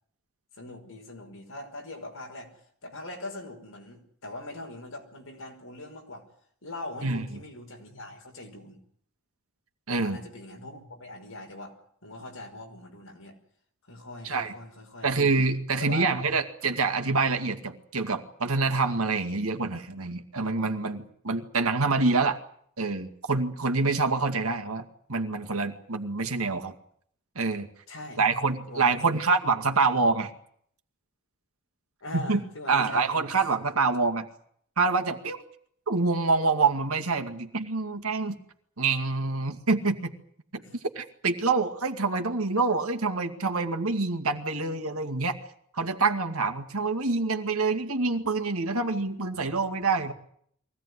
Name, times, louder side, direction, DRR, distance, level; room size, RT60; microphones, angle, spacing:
voice 1, 0.5-6.3 6.6-8.8 9.9-13.4 13.9-15.1 15.8-16.2 27.9-28.4 28.7-29.2 32.0-33.1 40.6-40.8, left 2 dB, 65° left, 3 dB, 5.7 m, -42 dB
voice 2, 9.9-10.2 14.2-14.5 15.0-22.4 22.8-26.7 27.4-27.7 28.2-30.3 32.1-32.4 32.7-34.3 34.8-35.4 35.9-38.4 38.8-40.1 41.0-45.4 45.7-50.1, right 3 dB, 75° right, 5 dB, 2.3 m, -26 dB
23.5 x 17.0 x 9.9 m, 0.65 s
head